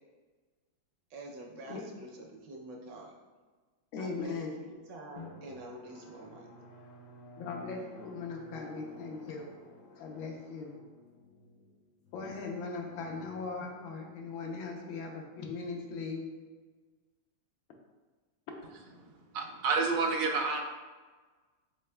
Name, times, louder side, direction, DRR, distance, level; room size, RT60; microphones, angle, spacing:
voice 1, 1.1-3.1 4.0-6.5, right 1 dB, 70° right, 0 dB, 1.2 m, -47 dB
voice 2, 3.9-4.5 7.4-9.5 10.0-10.7 12.1-16.3, left 4 dB, 85° left, 1 dB, 1.5 m, -39 dB
Drum, 5.2-14.4, left 1 dB, 70° left, 1.2 m, -53 dB
voice 3, 19.3-20.6, right 4 dB, 90° right, 1 dB, 1.5 m, -29 dB
5.4 x 4.3 x 2.2 m, 1.4 s
omnidirectional pair, 2.2 m